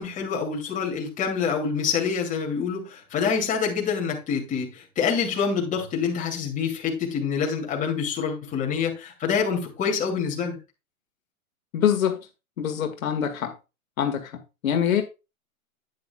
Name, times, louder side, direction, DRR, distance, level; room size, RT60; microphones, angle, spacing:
voice 1, 0.0-10.6, left 6 dB, 15° left, 2.6 m, -26 dB
voice 2, 11.7-12.2 12.6-13.5 14.0-14.2 14.6-15.0, left 9 dB, 70° left, 1.8 m, -24 dB
9.5 x 9.4 x 2.3 m
hypercardioid pair, 140°, 43 cm